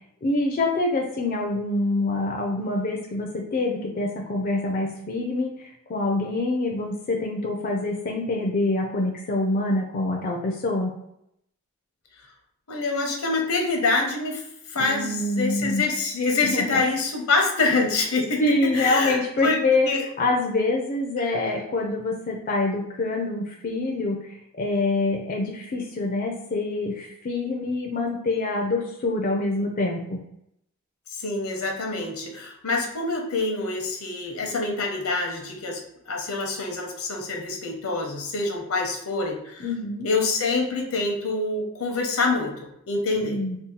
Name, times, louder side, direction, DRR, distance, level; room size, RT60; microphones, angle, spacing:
voice 1, 0.2-10.9 14.8-15.8 16.4-16.8 18.4-19.9 20.2-24.3 24.6-30.2 39.6-40.1 43.2-43.6, left 2 dB, 40° left, 0 dB, 0.4 m, -25 dB
voice 2, 12.7-14.4 14.7-20.0 31.1-35.8 36.1-39.7 40.0-43.4, left 3 dB, 80° left, 1 dB, 0.8 m, -26 dB
2.7 x 2.3 x 3.7 m, 0.78 s
head